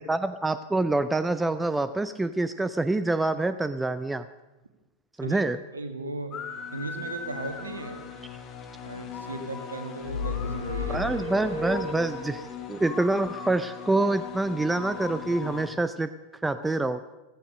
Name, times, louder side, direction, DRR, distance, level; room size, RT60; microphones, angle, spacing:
voice 1, 0.1-4.3 5.2-5.6 10.9-16.1 16.4-17.0, right 2 dB, 10° right, 13 dB, 0.4 m, -26 dB
voice 2, 5.7-6.4 6.7-8.1 8.8-11.0, right 2 dB, 75° right, 7 dB, 1.6 m, -36 dB
sound 1, 6.3-15.7, left 7 dB, 30° left, 1.8 m, -39 dB
sound 2, 10.0-12.5, left 3 dB, 75° left, 2.6 m, -32 dB
15.5 x 14.5 x 5.2 m, 1.1 s
figure-of-eight pair, 90°, 0 cm